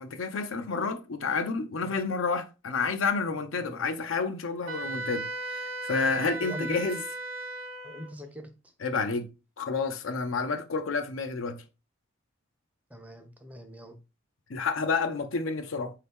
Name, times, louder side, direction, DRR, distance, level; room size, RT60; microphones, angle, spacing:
voice 1, 0.0-7.0 8.8-9.3 9.6-11.6 14.5-15.9, left 4 dB, 85° left, 0.6 m, -30 dB
Wind instrument woodwind instrument, 4.7-8.1, right 2 dB, 90° right, 0.8 m, -36 dB
voice 2, 6.4-7.0 7.8-8.5 12.9-14.0, left 1 dB, 5° right, 0.5 m, -40 dB
4.3 x 2.8 x 3.5 m
head